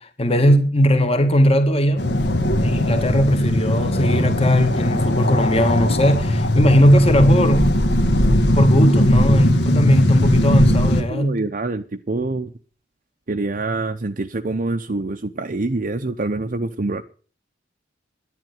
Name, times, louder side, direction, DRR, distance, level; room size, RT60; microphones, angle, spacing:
voice 1, 0.0-2.0 2.6-7.8 8.6-11.4, equal, 35° left, 1.8 m, -18 dB
sound 1, 2.0-11.0, left 1 dB, 65° left, 1.7 m, -18 dB
voice 2, 10.8-12.5 13.3-17.0, right 2 dB, 45° right, 0.7 m, -26 dB
10.5 x 10.5 x 9.4 m
head